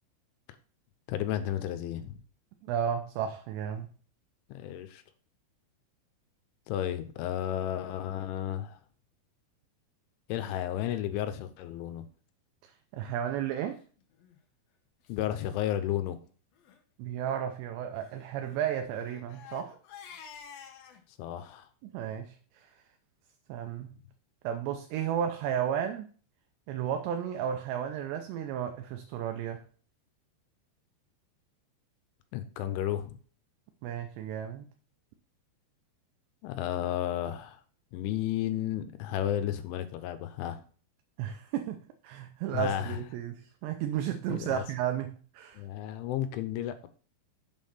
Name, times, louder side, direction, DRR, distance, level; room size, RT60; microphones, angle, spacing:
voice 1, 1.1-2.2 4.5-5.0 6.7-8.8 10.3-12.0 15.1-16.2 21.2-21.7 32.3-33.2 36.4-37.6 37.9-40.6 42.5-43.0 44.3-44.6 45.5-46.9, left 11 dB, 90° left, 3.2 m, -33 dB
voice 2, 2.7-3.9 12.9-13.8 17.0-19.8 21.8-22.7 23.5-23.9 24.4-26.1 26.7-29.6 33.8-34.7 41.2-45.6, right 9 dB, 80° right, 2.7 m, -33 dB
Crying sobbing, 14.1-14.4 15.0-15.1 15.4-15.5 15.9-16.1 16.5-16.8 17.9-21.0, left 7 dB, 70° left, 2.5 m, -50 dB
7.4 x 5.5 x 5.7 m
omnidirectional pair, 5.3 m